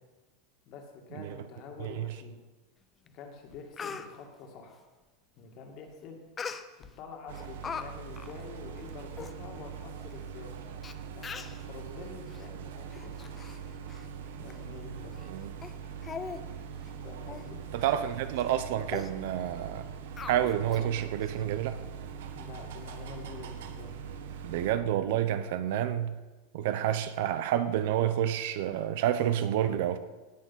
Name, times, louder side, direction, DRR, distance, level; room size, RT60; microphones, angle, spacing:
voice 1, 0.7-2.4 3.1-4.8 5.4-6.2 7.0-10.5 11.1-13.3 14.4-15.2 17.0-17.6 22.3-24.0, left 4 dB, 40° left, 3 dB, 2.4 m, -47 dB
Speech, 3.1-3.2 3.5-4.1 6.4-6.9 7.3-7.8 8.2-8.3 8.9-9.0 9.2-9.3 10.1-10.2 10.8-10.9 11.2-11.6 12.3-12.5 12.9-13.6 13.9-14.1 14.5-14.6 15.1-15.3 15.6-15.7 16.0-16.4 16.7-16.9 17.3-17.5 17.8-18.0 18.3-18.5 18.9-19.1 20.2-20.8 21.2-21.3, left 6 dB, 15° left, 0.6 m, -40 dB
sound 1, 7.3-24.7, right 7 dB, 75° right, 1.4 m, -42 dB
voice 2, 17.7-19.9 20.3-21.8 24.4-26.1 26.5-30.0, right 11 dB, 60° right, 11 dB, 0.9 m, -29 dB
18.0 x 7.2 x 5.9 m, 1.2 s
supercardioid pair, 165°, 0 cm